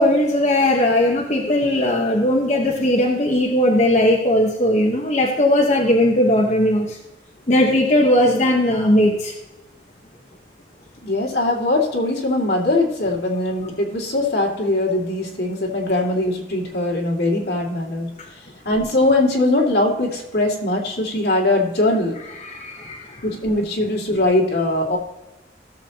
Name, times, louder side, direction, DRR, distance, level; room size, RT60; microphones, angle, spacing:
voice 1, 0.0-7.0 7.5-9.3 22.5-23.1, left 1 dB, 40° left, -2 dB, 1.1 m, -18 dB
voice 2, 11.0-18.1 18.6-22.2 23.2-25.0, left 2 dB, 65° left, -1 dB, 2.3 m, -21 dB
16.5 x 7.1 x 2.9 m, 1.0 s
head